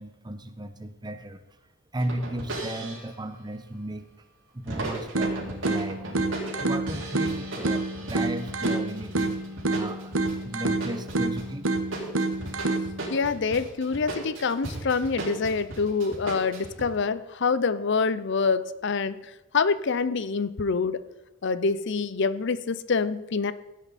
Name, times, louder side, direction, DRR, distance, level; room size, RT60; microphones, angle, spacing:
voice 1, 0.0-1.4 1.9-4.1 4.5-6.3 6.6-9.4 9.7-10.1 10.4-11.7, right 1 dB, 20° right, 9 dB, 1.0 m, -35 dB
sound 1, 2.0-3.2 4.7-16.9, right 2 dB, 65° right, 4.2 m, -36 dB
sound 2, 5.2-13.2, right 2 dB, 85° right, 1.2 m, -29 dB
voice 2, 13.1-21.0 21.4-23.5, left 4 dB, 60° left, 15 dB, 0.6 m, -26 dB
16.0 x 9.2 x 4.2 m, 1.1 s
head